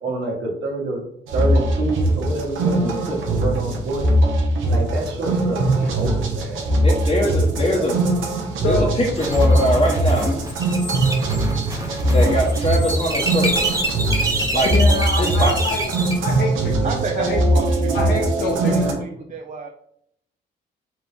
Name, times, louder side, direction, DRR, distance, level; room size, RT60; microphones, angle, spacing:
voice 1, 0.0-1.0 1.3-4.0 4.7-6.7 7.7-7.8, right 2 dB, 60° right, -1 dB, 1.4 m, -27 dB
sound 1, 1.3-18.9, right 1 dB, 80° right, 0.9 m, -21 dB
voice 2, 6.8-8.0 8.7-10.3 12.1-13.7 14.5-14.7 15.2-15.5, equal, 25° left, -3 dB, 1.0 m, -22 dB
sound 2, 9.2-16.1, right 2 dB, 15° right, 1.1 m, -26 dB
voice 3, 14.6-15.8 16.2-17.4 17.9-19.0, left 2 dB, 55° left, -2 dB, 0.9 m, -26 dB
voice 4, 16.8-19.7, right 4 dB, 40° right, 3 dB, 0.5 m, -31 dB
4.3 x 2.8 x 3.4 m, 0.72 s
cardioid pair, 90°, 20 cm